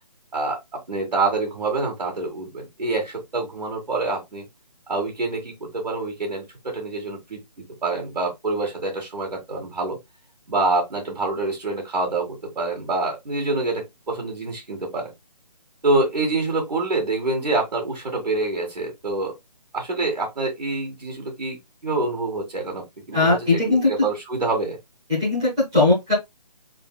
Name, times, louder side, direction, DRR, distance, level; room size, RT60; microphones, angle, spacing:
voice 1, 0.3-4.4 4.9-7.4 7.8-10.0 10.5-15.1 15.8-19.4 19.7-24.8, right 3 dB, 75° right, 1.8 m, -26 dB
voice 2, 23.1-24.1 25.1-26.1, left 2 dB, 5° right, 0.7 m, -19 dB
4.3 x 3.9 x 2.3 m
hypercardioid pair, 175°, 21 cm